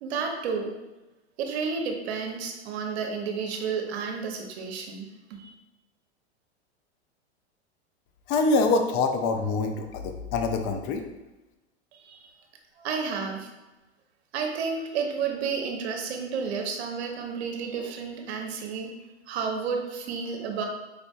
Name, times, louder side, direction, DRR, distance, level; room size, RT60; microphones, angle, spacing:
voice 1, 0.0-0.7 1.4-5.5 11.9-12.3 12.8-13.5 14.3-18.9 19.3-20.7, right 5 dB, 70° right, 3 dB, 0.7 m, -31 dB
voice 2, 8.3-11.0, left 3 dB, 35° left, 6 dB, 0.4 m, -25 dB
4.7 x 2.5 x 2.3 m, 1.1 s
hypercardioid pair, 110°, 33 cm